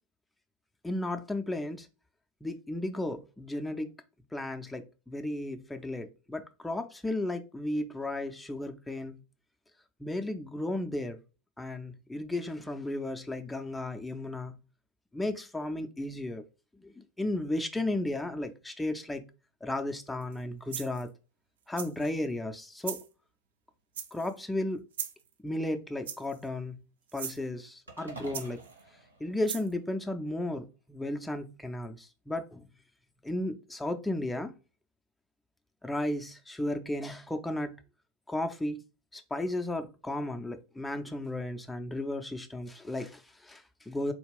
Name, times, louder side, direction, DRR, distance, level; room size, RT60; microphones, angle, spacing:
voice 1, 0.8-1.9 2.4-3.9 4.3-9.1 10.0-11.2 11.6-14.5 15.1-16.4 16.8-19.2 19.6-21.1 21.7-23.0 24.1-24.8 25.4-26.8 27.1-28.6 29.2-32.7 33.2-34.5 35.8-37.8 38.3-38.8 39.1-44.1, left 1 dB, 5° left, 0.4 m, -34 dB
sound 1, 20.2-20.4 20.7-21.1 21.8-22.1 22.8-23.1 23.9-24.4 24.9-25.3 26.0-26.5 27.1-27.4 28.3-28.8 29.4-29.7, right 8 dB, 60° right, 0.4 m, -38 dB
sound 2, 27.9-30.2, right 2 dB, 80° right, 1.2 m, -48 dB
4.1 x 2.3 x 3.3 m
figure-of-eight pair, 90°, 0 cm